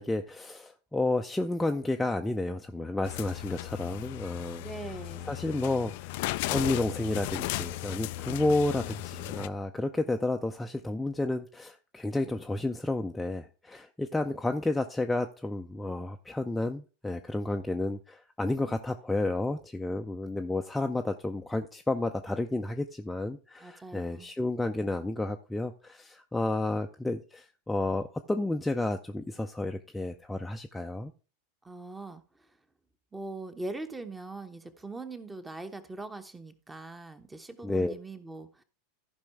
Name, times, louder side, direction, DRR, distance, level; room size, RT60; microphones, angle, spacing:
voice 1, 0.0-4.6 5.3-6.1 6.5-31.1 37.6-37.9, left 2 dB, 5° left, 0.6 m, -31 dB
sound 1, 3.0-9.5, left 18 dB, 55° left, 0.3 m, -36 dB
voice 2, 4.6-5.3 23.6-24.3 31.6-32.2 33.1-38.6, right 2 dB, 10° right, 1.0 m, -41 dB
14.5 x 5.3 x 3.5 m
figure-of-eight pair, 85°, 0 cm